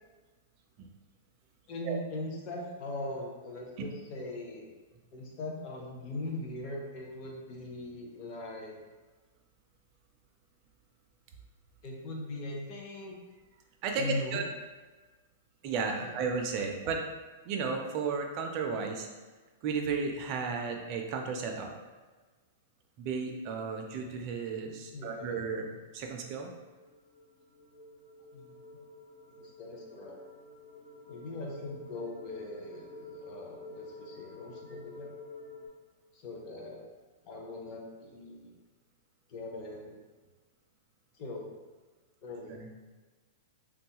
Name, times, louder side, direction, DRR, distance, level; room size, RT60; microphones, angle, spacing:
voice 1, 1.7-4.7 5.1-8.8 11.8-13.2 14.0-14.4 16.0-16.2 24.9-25.4 28.3-28.7 29.3-30.2 31.1-35.1 36.1-36.8 37.2-38.5 39.3-40.0 41.1-41.5 42.2-42.6, left 2 dB, 30° left, -1 dB, 0.5 m, -40 dB
voice 2, 13.8-14.4 15.6-17.0 17.5-19.1 19.6-21.7 23.0-25.7 25.9-26.5 42.5-42.7, right 5 dB, 30° right, 2 dB, 0.4 m, -33 dB
sound 1, 26.5-35.7, left 2 dB, 45° left, 0.9 m, -49 dB
3.5 x 2.3 x 2.8 m, 1.3 s
supercardioid pair, 170°, 0 cm